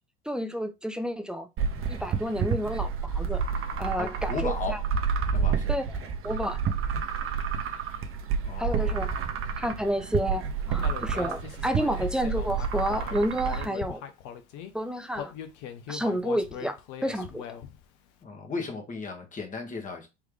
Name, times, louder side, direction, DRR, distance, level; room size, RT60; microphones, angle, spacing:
voice 1, 0.3-1.5 1.9-3.4 3.8-4.8 5.7-6.0 6.2-6.6 8.6-9.1 9.6-14.0 14.7-15.3 15.9-17.5, equal, ahead, 0.4 m, -30 dB
sound 1, 1.6-13.6, right 6 dB, 35° right, 0.8 m, -29 dB
voice 2, 4.0-4.8 5.3-5.7 8.4-9.0 18.2-20.1, left 4 dB, 20° left, 1.3 m, -35 dB
Human voice, 10.8-14.7 15.1-17.9, left 9 dB, 55° left, 0.8 m, -40 dB
3.5 x 3.1 x 3.5 m
hypercardioid pair, 80°, 35 cm